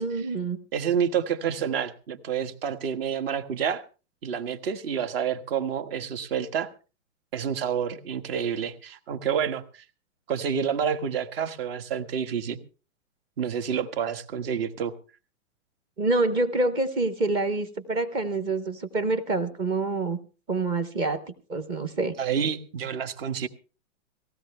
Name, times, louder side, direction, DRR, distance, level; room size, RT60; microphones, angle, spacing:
voice 1, 0.0-0.6 16.0-20.2 20.5-21.2 21.5-22.1, right 2 dB, 15° right, 0.6 m, -26 dB
voice 2, 0.7-3.8 4.2-6.7 7.3-9.8 10.3-12.6 13.4-14.9 22.2-23.5, right 7 dB, 50° right, 1.5 m, -28 dB
18.5 x 15.5 x 3.3 m
hypercardioid pair, 165°, 37 cm